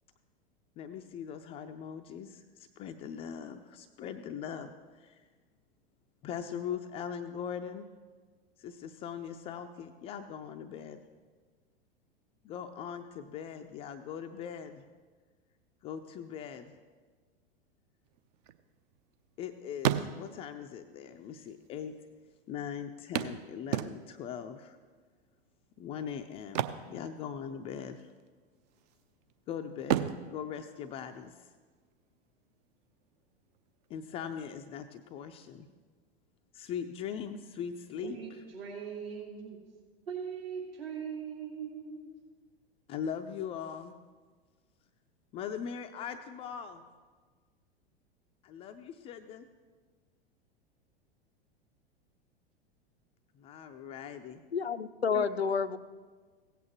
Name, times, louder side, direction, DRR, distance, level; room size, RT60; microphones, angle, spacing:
voice 1, 0.8-5.3 6.2-7.9 8.6-11.0 12.4-14.8 15.8-16.7 19.4-21.9 22.5-24.8 25.8-28.1 29.5-31.5 33.9-35.7 36.5-38.2 42.9-43.9 45.3-46.9 48.4-49.5 53.3-54.4 55.1-55.3, left 8 dB, 20° left, 0.3 m, -40 dB
sound 1, 18.1-19.4 19.7-20.6 21.5-21.6 21.8-21.9 23.1-24.3 26.4-27.7 28.0-28.2 28.7-29.3 29.8-31.6 33.5-33.6 34.1-34.2, right 10 dB, 40° right, 0.5 m, -34 dB
voice 2, 38.0-39.6 40.1-42.1, right 7 dB, 65° right, 2.2 m, -40 dB
voice 3, 54.5-55.8, left 6 dB, 85° left, 0.5 m, -29 dB
16.5 x 8.3 x 3.0 m
figure-of-eight pair, 90°, 31 cm